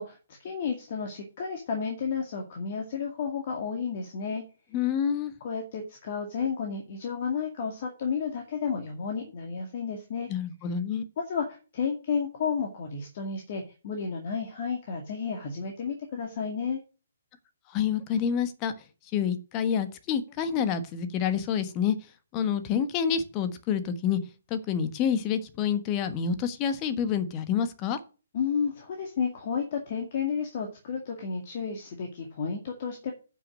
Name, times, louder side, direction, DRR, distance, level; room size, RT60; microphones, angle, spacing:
voice 1, 0.0-4.4 5.4-10.3 11.2-16.8 28.3-33.1, left 6 dB, 40° left, 2.2 m, -32 dB
voice 2, 4.7-5.3 10.3-11.0 17.7-18.7 19.1-22.0 22.3-24.2 24.5-28.0, left 8 dB, 25° left, 1.3 m, -28 dB
10.0 x 6.2 x 6.3 m
figure-of-eight pair, 130°, 0 cm